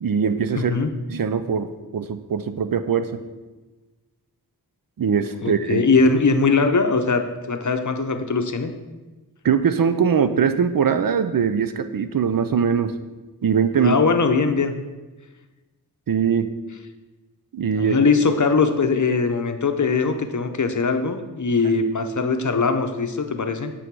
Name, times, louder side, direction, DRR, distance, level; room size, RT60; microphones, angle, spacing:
voice 1, 0.0-0.8 1.1-3.2 5.0-5.9 9.4-12.9 13.4-14.0 16.1-16.5 17.5-18.0, right 7 dB, 60° right, 10 dB, 0.5 m, -21 dB
voice 2, 0.5-0.9 5.4-8.7 13.8-14.7 17.8-23.7, left 4 dB, 50° left, 7 dB, 0.7 m, -21 dB
8.0 x 3.8 x 4.6 m, 1.2 s
cardioid pair, 40°, 39 cm